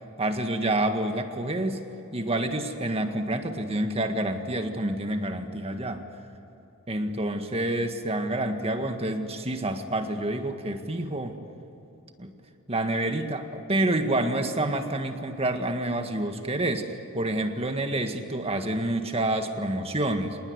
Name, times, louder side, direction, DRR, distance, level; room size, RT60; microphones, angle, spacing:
voice 1, 0.2-1.8 2.1-6.0 6.9-11.4 12.2-12.3 12.7-20.4, right 1 dB, 30° right, 6 dB, 1.8 m, -28 dB
27.0 x 20.0 x 9.7 m, 2.9 s
head